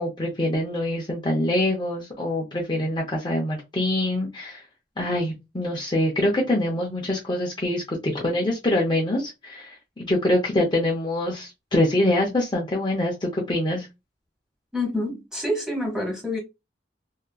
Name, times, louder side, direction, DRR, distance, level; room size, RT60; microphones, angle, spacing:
voice 1, 0.0-4.6 5.0-13.9, left 1 dB, 25° left, 0.5 m, -25 dB
voice 2, 14.7-16.4, left 1 dB, 5° right, 1.0 m, -27 dB
2.7 x 2.4 x 2.2 m
head